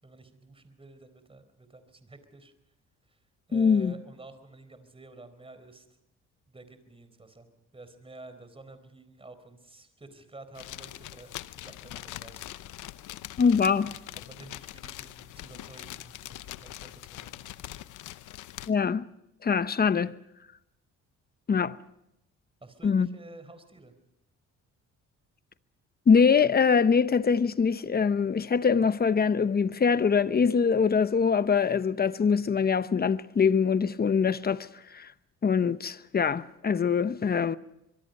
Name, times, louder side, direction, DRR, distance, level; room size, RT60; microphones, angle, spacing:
voice 1, 0.0-2.5 3.1-3.2 3.5-5.9 6.5-7.5 7.7-12.4 14.1-17.8 22.6-23.9, right 2 dB, 20° right, 4.2 m, -50 dB
voice 2, 3.5-3.9 13.4-13.9 18.7-19.0 19.4-20.1 21.5-21.8 22.8-23.1 26.1-34.7 34.9-35.1 35.4-37.6, left 6 dB, 30° left, 0.9 m, -23 dB
sound 1, 10.5-18.7, left 14 dB, 85° left, 0.8 m, -43 dB
25.0 x 23.0 x 5.4 m
cardioid pair, 90°, 30 cm